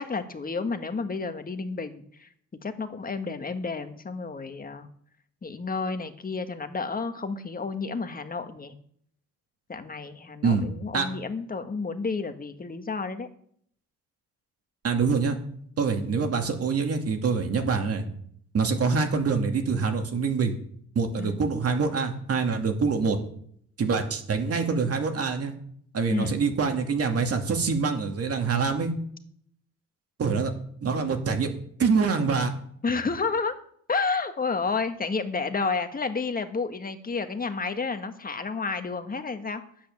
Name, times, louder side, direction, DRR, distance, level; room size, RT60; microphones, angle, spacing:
voice 1, 0.0-2.3 2.6-4.9 5.4-8.7 9.7-13.3 21.2-21.5 26.1-26.4 32.8-33.5 33.9-39.6, left 4 dB, 30° left, 8 dB, 1.6 m, -31 dB
voice 2, 14.8-15.4 15.8-18.0 18.5-20.5 20.9-23.2 23.8-25.5 25.9-28.9 30.2-30.5 30.8-32.5, right 5 dB, 50° right, 5 dB, 2.4 m, -25 dB
10.5 x 8.8 x 7.2 m, 0.64 s
cardioid pair, 90°, 30 cm